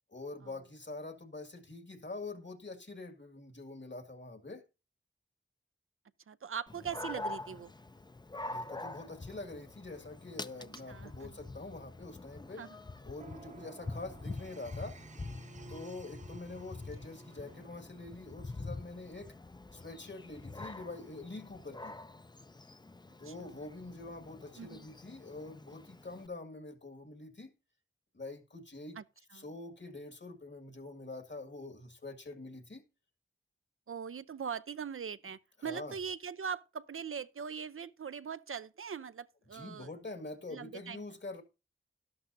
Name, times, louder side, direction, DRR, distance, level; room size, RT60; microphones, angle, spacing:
voice 1, 0.1-4.6 8.5-12.6 13.0-15.0 15.7-19.3 19.7-22.0 23.2-27.5 28.1-29.0 29.3-32.8 35.6-35.9 39.5-41.4, left 2 dB, 60° left, 1.9 m, -45 dB
voice 2, 6.3-7.7 10.9-11.3 12.6-12.8 23.2-23.5 24.5-24.9 29.0-29.1 29.3-29.4 33.9-39.9 40.5-41.1, right 7 dB, 85° right, 0.5 m, -41 dB
Dog, 6.7-26.3, left 2 dB, 20° left, 0.5 m, -46 dB
sound 1, 13.2-17.7, right 5 dB, 35° right, 0.5 m, -54 dB
12.0 x 11.5 x 2.6 m
wide cardioid pair, 60°, 21 cm